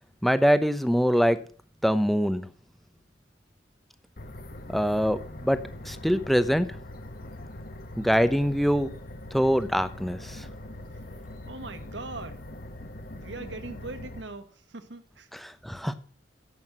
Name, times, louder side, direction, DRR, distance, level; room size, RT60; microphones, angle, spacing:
voice 1, 0.2-1.4 1.8-2.5 4.7-5.6 5.8-6.7 8.0-8.9 9.3-10.4 15.4-15.9, equal, ahead, 11 dB, 0.8 m, -23 dB
sound 1, 4.2-14.2, left 1 dB, 55° left, 1.3 m, -42 dB
voice 2, 11.5-12.4 13.1-15.3, right 3 dB, 80° right, 9 dB, 1.6 m, -40 dB
11.0 x 8.0 x 7.6 m, 0.43 s
head